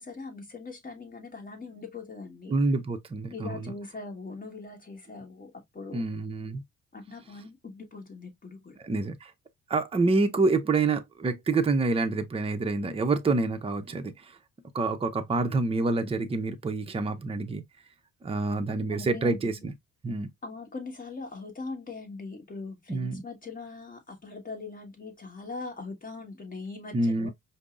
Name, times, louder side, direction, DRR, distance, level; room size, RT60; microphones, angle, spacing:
voice 1, 0.0-2.6 3.3-6.1 6.9-8.8 18.9-19.7 20.4-27.3, left 3 dB, 30° left, 1.3 m, -41 dB
voice 2, 2.5-3.7 5.9-6.6 8.8-9.3 9.7-14.1 14.7-17.6 18.2-19.7 20.0-20.3 22.9-23.2 26.9-27.3, right 3 dB, 20° right, 0.6 m, -27 dB
5.1 x 2.0 x 2.4 m
cardioid pair, 90°, 30 cm